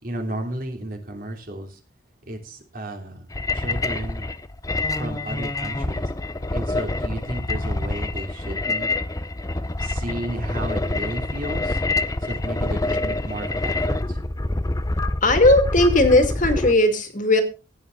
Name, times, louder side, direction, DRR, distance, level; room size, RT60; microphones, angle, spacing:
voice 1, 0.0-1.8 2.3-3.3 3.5-4.3 5.0-6.1 6.5-8.9 9.8-11.8 12.2-14.2, right 1 dB, 45° right, 3 dB, 3.2 m, -33 dB
sound 1, 3.3-16.7, left 2 dB, 15° left, 0.6 m, -26 dB
voice 2, 15.2-17.4, left 2 dB, 40° left, 7 dB, 2.4 m, -17 dB
15.5 x 9.6 x 4.0 m, 0.32 s
head